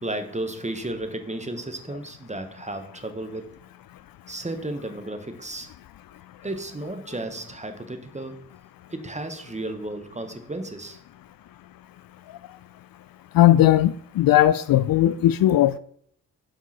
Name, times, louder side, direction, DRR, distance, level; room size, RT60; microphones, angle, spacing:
voice 1, 0.0-3.5 4.3-5.7 6.4-8.4 8.9-11.0, right 2 dB, 20° right, 1.3 m, -33 dB
voice 2, 13.3-15.8, left 13 dB, 65° left, 0.5 m, -18 dB
5.4 x 5.1 x 5.9 m
supercardioid pair, 45°, 38 cm